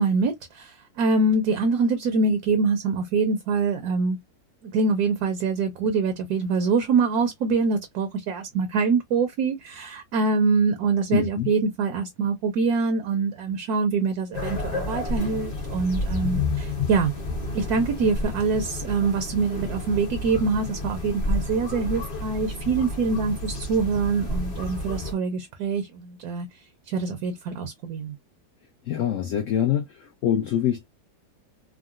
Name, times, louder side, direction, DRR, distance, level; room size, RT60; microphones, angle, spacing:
voice 1, 0.0-4.2 4.6-17.1 17.5-26.5 26.9-28.1, right 4 dB, 70° right, 1.1 m, -24 dB
voice 2, 11.1-11.5 28.8-31.0, left 10 dB, 70° left, 0.8 m, -25 dB
sound 1, 14.3-25.1, left 2 dB, 30° left, 0.8 m, -30 dB
3.7 x 2.0 x 2.3 m
omnidirectional pair, 1.9 m